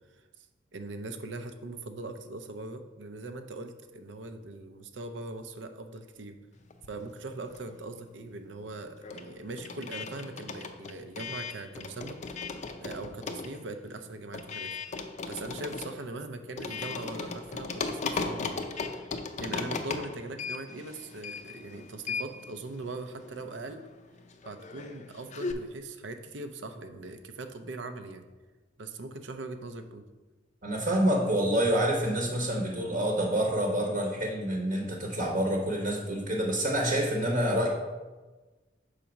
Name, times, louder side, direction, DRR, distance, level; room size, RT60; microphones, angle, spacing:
voice 1, 0.1-0.5 0.7-6.4 6.9-14.7 15.3-19.1 19.4-23.8 24.4-28.2 28.8-30.0, right 2 dB, 70° right, 8 dB, 0.6 m, -41 dB
sound 1, 6.7-8.0 8.2-25.5, left 4 dB, 40° left, 0.4 m, -38 dB
voice 2, 30.6-37.7, right 1 dB, 45° right, -1 dB, 1.0 m, -27 dB
5.1 x 4.1 x 5.8 m, 1.2 s
head